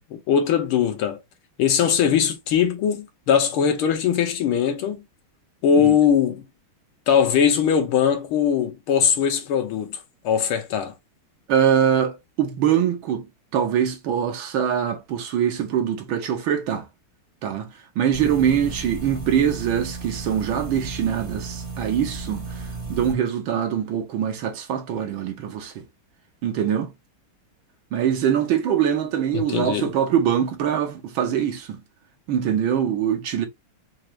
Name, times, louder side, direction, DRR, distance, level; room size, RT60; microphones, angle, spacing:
voice 1, 0.1-1.2 1.6-5.0 5.6-6.5 7.1-10.0 10.2-10.9 29.3-29.9, left 8 dB, 80° left, 1.8 m, -20 dB
voice 2, 11.5-13.3 13.5-16.9 17.4-25.8 26.4-26.9 27.9-31.8 32.3-33.5, right 9 dB, 70° right, 1.7 m, -23 dB
sound 1, 18.1-23.1, right 4 dB, 25° right, 0.8 m, -34 dB
4.7 x 2.5 x 3.1 m
omnidirectional pair, 2.3 m